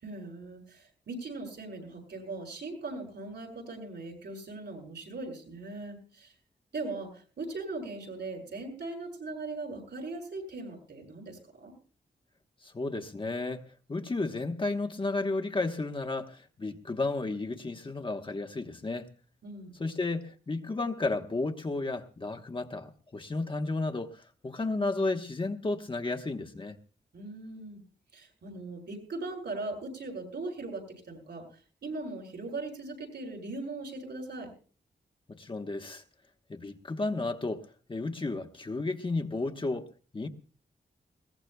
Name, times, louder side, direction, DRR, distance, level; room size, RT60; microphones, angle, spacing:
voice 1, 0.0-6.3 6.7-11.7 19.4-19.7 27.1-27.8 28.1-31.4 31.8-34.5, right 2 dB, 70° right, 1 dB, 7.7 m, -39 dB
voice 2, 12.6-13.6 13.9-19.1 19.8-26.8 35.3-36.0 36.5-39.9 40.1-40.3, left 3 dB, 30° left, 4 dB, 1.1 m, -33 dB
21.5 x 19.0 x 2.3 m, 0.40 s
wide cardioid pair, 120°, 18 cm